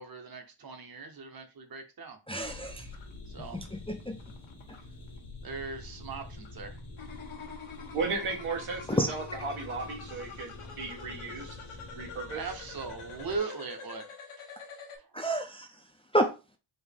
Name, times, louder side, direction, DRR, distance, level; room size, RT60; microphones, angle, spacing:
voice 1, 0.0-2.2 3.3-3.6 5.4-6.8 10.6-10.7 11.4-11.5 12.3-14.1 14.4-14.5 15.0-15.1, right 4 dB, 45° right, 1.0 m, -39 dB
voice 2, 2.3-2.9 3.5-4.2 9.0-9.1 15.1-15.7 16.1-16.3, right 1 dB, 15° left, 0.4 m, -29 dB
sound 1, 2.4-13.4, left 2 dB, 70° left, 1.2 m, -47 dB
sound 2, 7.0-15.0, left 5 dB, 90° left, 1.1 m, -46 dB
voice 3, 7.9-11.6 11.9-12.4, right 4 dB, 85° right, 1.4 m, -35 dB
4.4 x 2.6 x 3.5 m
wide cardioid pair, 105°, 49 cm